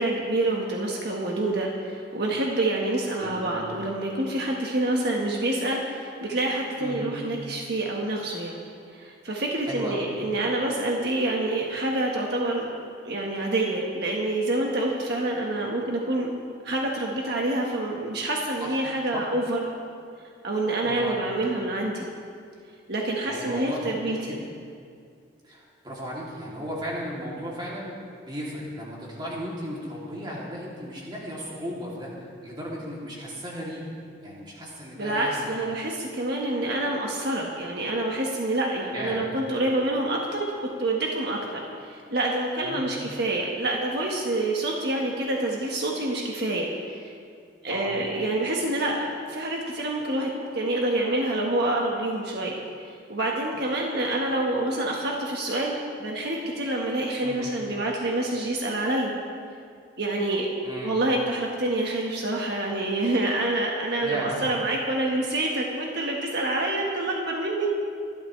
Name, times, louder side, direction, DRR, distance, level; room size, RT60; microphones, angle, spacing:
voice 1, 0.0-8.6 8.9-12.7 13.0-16.3 16.6-19.6 20.4-22.1 22.9-24.3 35.0-40.5 40.8-47.1 47.6-52.5 53.1-59.1 60.0-60.5 60.8-67.7, right 2 dB, 60° right, -2 dB, 1.4 m, -27 dB
voice 2, 3.1-3.6 6.8-7.1 9.6-10.1 18.6-18.8 19.1-19.3 20.8-21.2 23.2-24.4 25.4-27.9 28.3-33.9 34.2-35.5 38.9-39.3 42.6-42.9 47.6-48.0 57.2-57.5 60.6-61.0 64.0-64.5, equal, 25° right, -5 dB, 2.8 m, -35 dB
24.5 x 12.0 x 3.3 m, 2.3 s
head